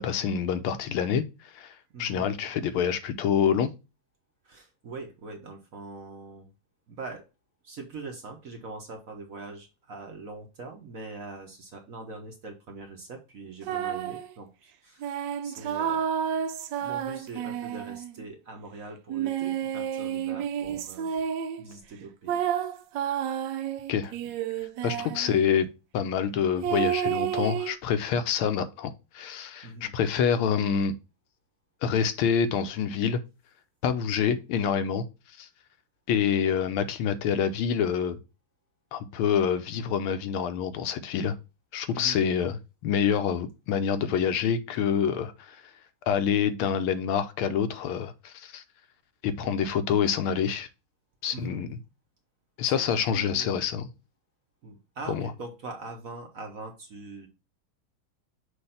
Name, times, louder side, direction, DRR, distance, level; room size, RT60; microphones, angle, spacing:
voice 1, 0.0-1.2 1.5-1.7 2.0-3.7 23.9-24.1 24.8-25.7 25.9-30.9 31.8-33.2 33.8-35.0 35.4-35.5 36.1-38.2 38.9-41.3 41.7-42.6 42.8-45.6 46.1-48.6 49.2-50.7 51.2-51.8 52.6-53.9 55.1-55.3, left 7 dB, 85° left, 1.5 m, -26 dB
voice 2, 1.9-2.3 4.4-6.5 6.9-7.2 7.6-16.0 16.8-21.1 21.6-22.4 24.9-25.1 29.6-29.9 41.9-42.2 51.3-51.6 52.6-53.6 54.6-57.3, right 3 dB, 50° right, 1.1 m, -42 dB
sound 1, 13.6-14.3 15.0-18.2 19.1-21.6 22.3-25.3 26.6-27.7, right 9 dB, 75° right, 1.0 m, -30 dB
6.5 x 2.7 x 5.6 m
omnidirectional pair, 2.3 m